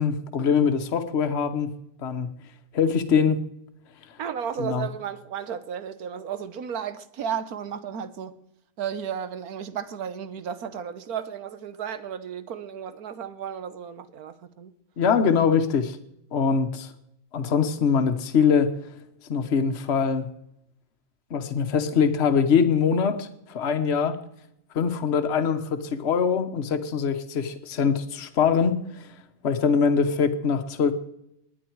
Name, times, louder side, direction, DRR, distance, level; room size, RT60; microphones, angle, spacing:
voice 1, 0.0-1.7 2.0-2.3 2.7-3.4 4.6-4.9 15.0-16.0 16.3-16.9 17.3-18.7 19.3-20.3 21.3-24.2 24.7-29.1 29.4-30.9, left 6 dB, 50° left, 1.2 m, -23 dB
voice 2, 4.2-8.4 8.8-14.7, right 8 dB, 75° right, 1.5 m, -33 dB
19.5 x 10.0 x 4.6 m
omnidirectional pair, 1.6 m